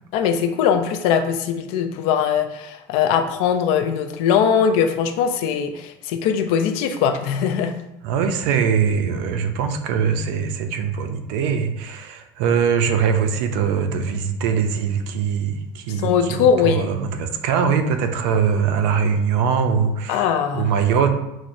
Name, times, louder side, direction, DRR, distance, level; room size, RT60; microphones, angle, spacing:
voice 1, 0.1-7.7 16.0-16.9 20.1-20.7, left 7 dB, 60° left, 8 dB, 0.4 m, -20 dB
voice 2, 8.0-21.1, right 6 dB, 80° right, 7 dB, 0.5 m, -22 dB
5.9 x 2.1 x 2.5 m, 0.87 s
cardioid pair, 170°, 12 cm